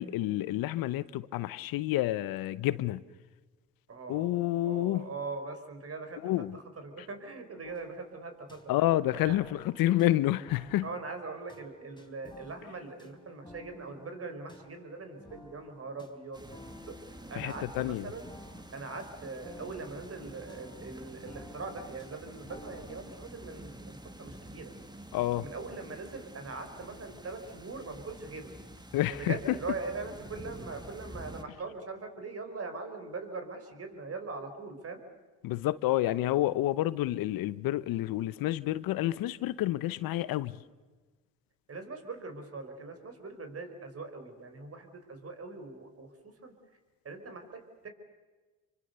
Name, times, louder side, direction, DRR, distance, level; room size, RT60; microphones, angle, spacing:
voice 1, 0.0-3.0 4.1-5.1 6.2-6.6 8.7-10.9 17.3-18.1 25.1-25.5 28.9-29.3 35.4-40.6, left 15 dB, 80° left, 0.9 m, -29 dB
voice 2, 3.9-8.6 9.2-9.4 10.8-16.9 17.3-18.3 18.7-24.7 25.4-28.5 29.1-35.0 41.7-46.5 47.0-47.9, right 3 dB, 40° right, 5.1 m, -41 dB
sound 1, 7.6-23.2, left 1 dB, 15° left, 4.1 m, -54 dB
sound 2, 16.3-31.4, right 1 dB, 10° right, 2.2 m, -48 dB
27.0 x 24.5 x 6.8 m
supercardioid pair, 80°, 35 cm